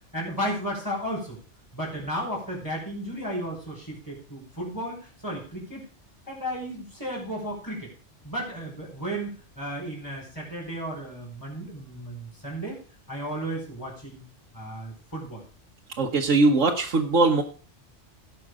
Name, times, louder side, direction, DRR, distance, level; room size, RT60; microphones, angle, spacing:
voice 1, 0.1-1.4 1.7-5.8 6.3-7.9 8.2-12.8 13.1-14.2 14.5-15.4, equal, 15° left, -3 dB, 5.5 m, -34 dB
voice 2, 16.0-17.4, right 3 dB, 85° right, 1 dB, 1.6 m, -21 dB
17.5 x 6.0 x 4.9 m, 0.40 s
omnidirectional pair, 1.3 m